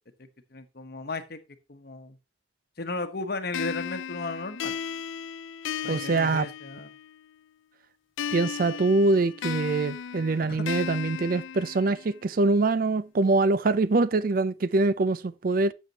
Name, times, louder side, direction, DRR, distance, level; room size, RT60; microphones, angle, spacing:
voice 1, 0.5-1.4 1.7-2.2 2.8-4.7 5.8-6.9 10.4-10.6, left 3 dB, 50° left, 1.0 m, -35 dB
sound 1, 3.5-7.2 8.2-12.2, left 8 dB, 75° left, 0.4 m, -35 dB
voice 2, 5.9-6.5 8.3-15.7, right 3 dB, 45° right, 0.4 m, -24 dB
12.0 x 7.4 x 2.9 m
head